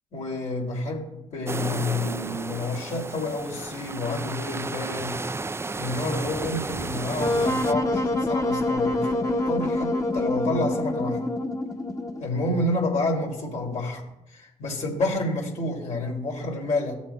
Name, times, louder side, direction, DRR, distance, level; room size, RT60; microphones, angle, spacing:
voice 1, 0.1-5.2 5.8-11.2 12.2-14.0 14.3-16.9, left 2 dB, 60° left, -1 dB, 2.6 m, -29 dB
sound 1, 1.5-7.7, right 3 dB, 20° right, 0.4 m, -33 dB
Wind instrument woodwind instrument, 7.2-12.3, left 2 dB, 25° left, 1.5 m, -26 dB
14.5 x 7.1 x 2.2 m, 0.90 s
hypercardioid pair, 45°, 14 cm